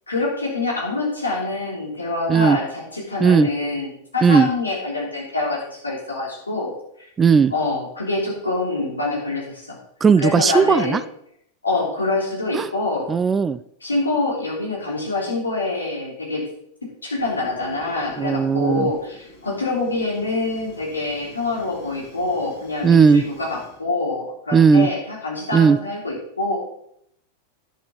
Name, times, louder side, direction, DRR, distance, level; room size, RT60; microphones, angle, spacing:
voice 1, 0.1-6.7 7.5-9.8 10.2-11.0 11.6-13.1 13.8-16.4 17.0-26.6, left 2 dB, 80° left, -3 dB, 3.3 m, -25 dB
voice 2, 7.2-7.5 10.0-11.0 12.5-12.7 13.1-13.6 18.2-18.9 22.8-23.2 24.5-24.9 25.5-25.8, right 6 dB, 20° right, 15 dB, 0.4 m, -16 dB
Fire, 17.2-23.8, left 2 dB, 45° left, 4.2 m, -46 dB
10.0 x 6.2 x 5.4 m, 0.72 s
figure-of-eight pair, 90°, 0 cm